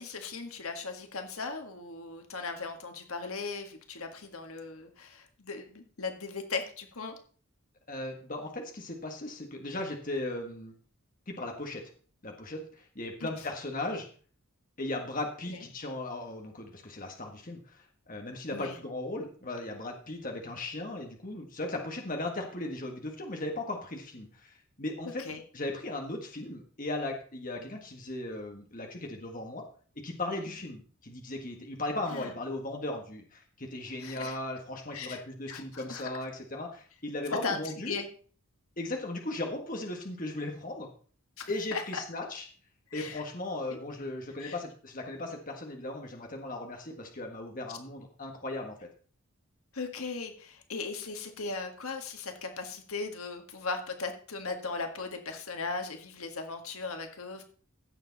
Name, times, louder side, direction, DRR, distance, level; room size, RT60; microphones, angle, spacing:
voice 1, 0.0-7.1 13.2-13.3 15.5-15.6 18.5-18.8 25.2-25.4 30.5-30.6 32.1-32.3 34.0-34.4 34.9-35.2 35.5-36.1 37.4-38.1 41.4-42.0 42.9-43.2 43.7-43.8 44.4-44.6 49.7-57.4, left 4 dB, 75° left, 5 dB, 1.8 m, -38 dB
voice 2, 7.9-10.7 11.3-11.9 12.2-14.1 14.8-25.2 25.5-29.6 30.0-37.9 38.8-40.9 41.5-42.4 42.9-48.9, left 2 dB, 35° left, 2 dB, 1.7 m, -37 dB
15.5 x 7.1 x 4.1 m, 0.43 s
head